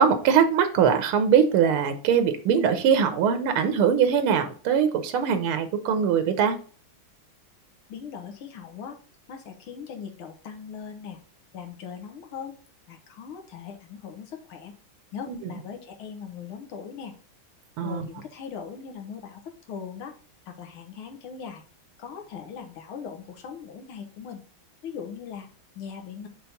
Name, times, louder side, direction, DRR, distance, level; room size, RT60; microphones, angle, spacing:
voice 1, 0.0-6.5 15.3-15.4 17.8-18.1, right 7 dB, 90° right, 9 dB, 1.8 m, -22 dB
voice 2, 7.9-9.0 9.3-11.2 11.5-12.6 12.9-14.7 15.1-17.1 17.8-20.2 20.5-21.6 22.0-24.4 24.8-25.5 25.8-26.3, left 7 dB, 80° left, 5 dB, 2.1 m, -39 dB
6.7 x 3.7 x 5.7 m, 0.41 s
omnidirectional pair, 2.3 m